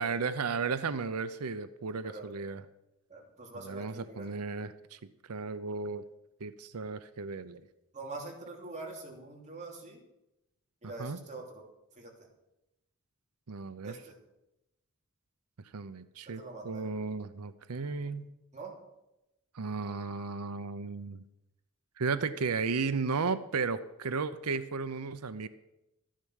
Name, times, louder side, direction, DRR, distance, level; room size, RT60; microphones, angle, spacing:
voice 1, 0.0-2.6 3.6-5.0 5.3-6.0 6.4-7.6 11.0-11.2 13.5-13.9 15.7-18.3 19.5-21.2 22.0-25.5, right 4 dB, 85° right, 12 dB, 0.7 m, -34 dB
voice 2, 3.1-4.3 7.9-10.0 10.8-11.7 11.9-12.1 13.8-14.2 16.4-16.9 18.5-18.8, right 3 dB, 35° right, 0 dB, 3.1 m, -44 dB
14.0 x 10.5 x 6.4 m, 0.91 s
head